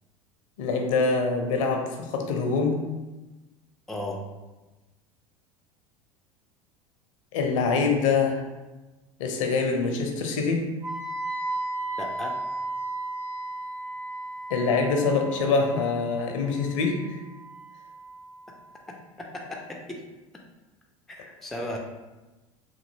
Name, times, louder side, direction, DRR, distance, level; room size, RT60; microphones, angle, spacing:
voice 1, 0.6-2.8 7.3-8.4 9.2-10.6 14.5-17.2, left 4 dB, 60° left, 3 dB, 0.5 m, -24 dB
voice 2, 3.9-4.2 12.0-12.3 19.2-20.0 21.1-21.8, left 1 dB, ahead, 0 dB, 0.3 m, -35 dB
Wind instrument woodwind instrument, 10.8-18.7, right 2 dB, 65° right, 1.2 m, -35 dB
3.0 x 2.6 x 2.6 m, 1.1 s
figure-of-eight pair, 75°, 18 cm